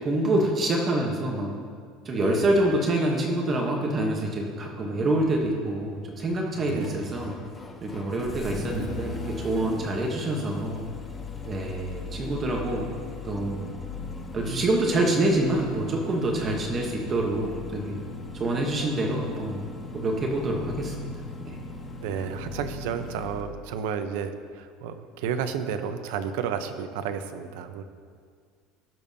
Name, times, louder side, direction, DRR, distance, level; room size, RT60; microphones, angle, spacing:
voice 1, 0.0-1.5 2.0-7.3 7.8-10.8 11.4-12.8 13.2-13.7 14.3-18.0 18.4-19.6 19.9-21.1 21.5-21.6, right 1 dB, 20° right, 0 dB, 0.9 m, -26 dB
Engine starting, 5.3-23.5, left 3 dB, 15° left, 0.6 m, -39 dB
voice 2, 6.6-7.1 22.0-27.8, right 7 dB, 75° right, 8 dB, 0.7 m, -32 dB
17.5 x 7.0 x 2.7 m, 2.1 s
cardioid pair, 170°, 0 cm